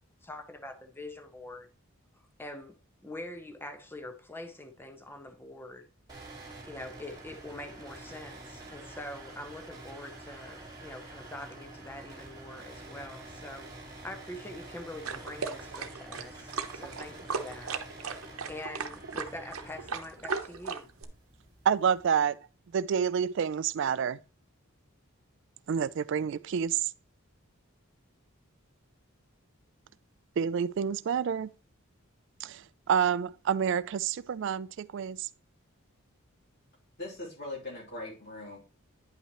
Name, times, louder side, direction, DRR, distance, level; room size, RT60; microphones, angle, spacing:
voice 1, 0.2-1.7 2.4-2.7 3.0-5.9 6.7-13.7 14.0-17.8 18.5-20.9, left 1 dB, 10° left, 0.7 m, -44 dB
sound 1, 6.1-22.1, right 2 dB, 20° right, 2.5 m, -48 dB
sound 2, 15.0-21.0, right 5 dB, 75° right, 0.8 m, -36 dB
voice 2, 21.7-22.4 22.7-24.2 25.7-26.9 30.4-31.5 32.4-35.3, right 7 dB, 55° right, 0.3 m, -28 dB
voice 3, 37.0-38.6, left 2 dB, 50° left, 3.2 m, -40 dB
9.7 x 5.5 x 3.0 m
head